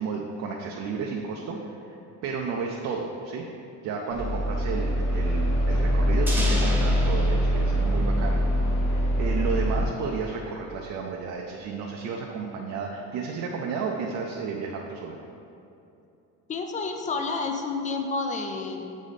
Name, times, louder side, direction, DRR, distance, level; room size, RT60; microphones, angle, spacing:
voice 1, 0.0-2.0 2.2-3.5 3.8-8.4 8.9-15.2, right 5 dB, 55° right, 0 dB, 0.6 m, -32 dB
sound 1, 4.1-9.8, equal, 65° left, 1.6 m, -23 dB
sound 2, 6.3-9.0, right 1 dB, 5° right, 0.8 m, -34 dB
voice 2, 16.5-18.8, left 4 dB, 25° left, 4 dB, 0.4 m, -30 dB
7.4 x 5.0 x 4.1 m, 2.8 s
cardioid pair, 170°, 32 cm